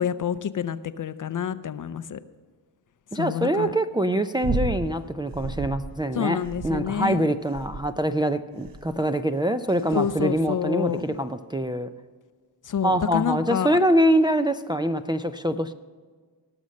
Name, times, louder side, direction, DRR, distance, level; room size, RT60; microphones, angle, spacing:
voice 1, 0.0-2.2 3.2-3.7 6.2-7.3 9.9-11.1 12.7-13.8, left 8 dB, 45° left, 13 dB, 0.6 m, -28 dB
voice 2, 3.1-11.9 12.8-15.7, right 1 dB, 10° right, 7 dB, 0.4 m, -24 dB
sound 1, 4.4-4.9 5.3-5.9 6.4-7.0 7.5-8.0 8.6-9.0 9.7-10.1 11.0-11.1, right 3 dB, 50° right, 1.0 m, -32 dB
18.0 x 6.4 x 6.4 m, 1.6 s
cardioid pair, 70°, 45 cm